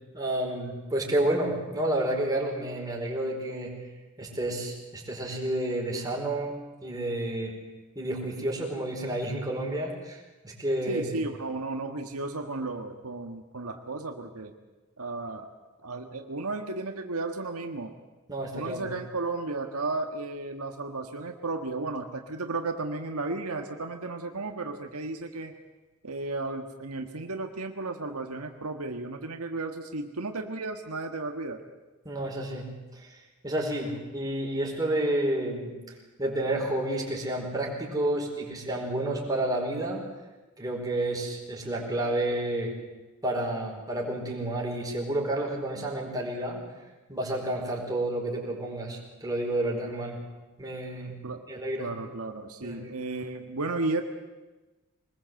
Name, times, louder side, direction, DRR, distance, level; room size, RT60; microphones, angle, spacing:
voice 1, 0.1-3.7 4.2-6.5 6.8-7.6 7.9-11.3 18.3-18.9 32.0-32.7 33.0-33.2 33.4-35.7 36.2-40.0 40.6-42.7 43.2-46.6 47.1-50.2 50.6-51.2 51.5-51.9 52.6-53.0, right 1 dB, 15° right, -1 dB, 4.8 m, -30 dB
voice 2, 10.9-14.5 15.0-15.5 15.8-17.9 18.5-25.5 26.0-31.6 51.2-51.4 51.8-54.0, right 3 dB, 80° right, 5 dB, 1.6 m, -34 dB
23.5 x 20.5 x 7.8 m, 1.2 s
head